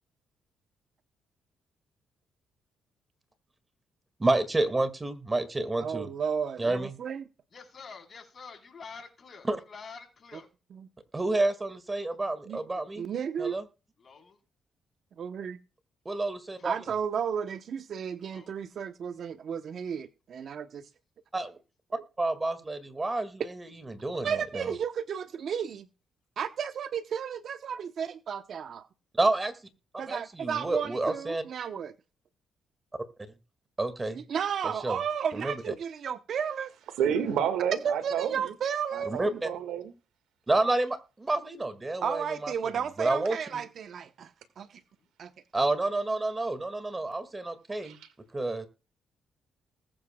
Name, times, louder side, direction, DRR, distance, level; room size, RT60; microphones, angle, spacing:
voice 1, 4.2-6.1 6.6-6.9 9.5-9.6 11.1-13.1 13.4-13.6 16.1-16.7 21.3-21.6 22.2-24.7 29.1-29.5 30.1-31.4 33.8-34.2 34.6-35.0 35.3-35.7 39.1-39.5 40.5-42.5 43.0-43.6 45.5-48.0 48.3-48.6, right 2 dB, 20° right, 2.0 m, -29 dB
voice 2, 5.8-7.2 10.7-10.9 12.5-12.6 13.0-13.6 15.2-15.6 16.6-20.8 21.9-22.0 24.2-25.9 26.4-28.9 30.0-31.9 34.1-36.7 37.8-39.2 42.0-44.3 44.6-44.8 45.2-45.3, right 7 dB, 60° right, 0.8 m, -33 dB
voice 3, 7.5-10.5 14.0-14.4 16.6-16.7 18.3-18.5 45.0-45.1, left 5 dB, 45° left, 3.9 m, -47 dB
voice 4, 37.0-38.5 38.9-39.9 47.8-48.1, right 8 dB, 85° right, 1.8 m, -30 dB
20.0 x 8.8 x 2.3 m
cardioid pair, 90°, 0 cm